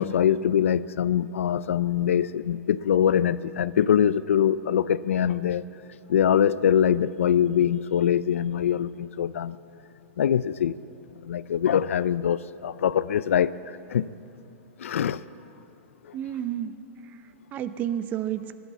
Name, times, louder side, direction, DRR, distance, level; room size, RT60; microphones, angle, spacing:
voice 1, 0.0-5.6 6.1-9.6 10.2-10.7 11.3-13.5 13.9-14.1 14.8-15.2, left 9 dB, 90° left, 17 dB, 0.4 m, -23 dB
voice 2, 16.1-16.8 17.0-18.6, right 10 dB, 25° right, 12 dB, 0.6 m, -31 dB
15.0 x 11.5 x 8.1 m, 2.7 s
hypercardioid pair, 150°, 7 cm